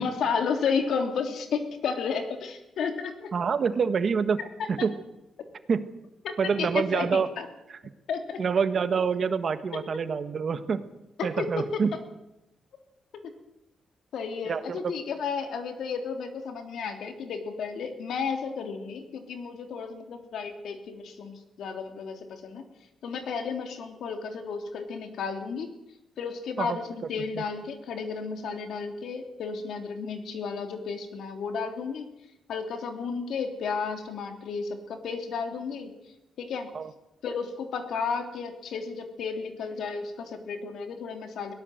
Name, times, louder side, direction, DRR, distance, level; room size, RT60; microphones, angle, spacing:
voice 1, 0.0-3.3 4.4-4.7 6.2-7.5 8.1-8.4 9.7-9.8 11.2-12.0 14.1-22.6 23.0-25.7 26.2-32.1 32.5-35.9 36.4-36.7 37.2-41.5, left 5 dB, 70° left, 6 dB, 3.2 m, -32 dB
voice 2, 3.3-4.4 4.7-4.9 5.7-5.9 6.4-7.3 8.4-10.8 11.2-11.9 14.5-14.9 26.6-26.8 27.4-27.5 36.7-36.9, right 6 dB, 40° right, 11 dB, 1.4 m, -26 dB
22.5 x 18.0 x 8.0 m, 0.90 s
wide cardioid pair, 160°, 0 cm